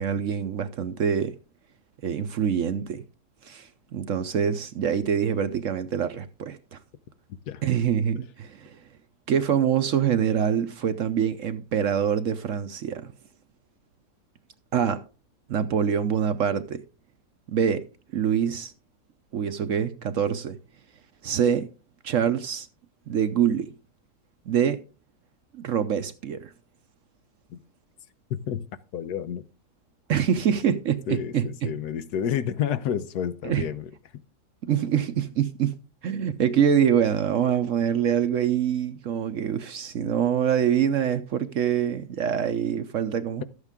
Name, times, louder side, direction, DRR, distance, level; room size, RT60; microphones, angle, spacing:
voice 1, 0.0-1.3 2.0-3.0 3.4-6.8 7.6-8.8 9.3-13.1 14.7-15.0 15.5-16.8 17.5-17.8 18.1-18.7 19.3-20.6 21.2-21.7 22.0-22.7 23.1-23.7 24.5-24.8 25.6-26.5 30.1-31.7 33.4-33.7 34.7-35.8 36.0-43.4, right 8 dB, 60° right, 0.9 m, -25 dB
voice 2, 28.3-28.6 28.9-29.4 31.1-33.9, left 9 dB, 75° left, 1.3 m, -29 dB
12.5 x 8.2 x 3.6 m
omnidirectional pair, 1.8 m